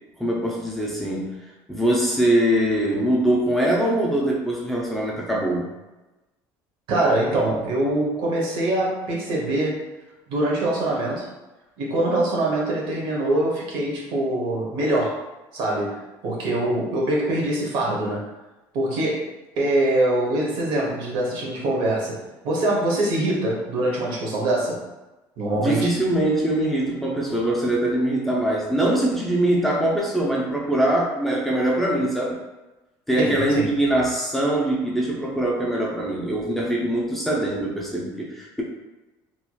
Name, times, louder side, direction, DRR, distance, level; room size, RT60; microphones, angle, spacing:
voice 1, 0.2-1.4 1.7-5.7 25.5-32.4 33.1-38.6, right 1 dB, ahead, -4 dB, 0.5 m, -22 dB
voice 2, 6.9-9.8 10.3-11.2 11.8-15.1 15.5-16.0 16.2-18.2 18.7-19.2 19.6-22.2 22.4-24.8 25.4-25.9 33.2-33.7, right 1 dB, 70° right, -3 dB, 1.1 m, -23 dB
3.0 x 3.0 x 2.3 m, 1.1 s
cardioid pair, 125°, 9 cm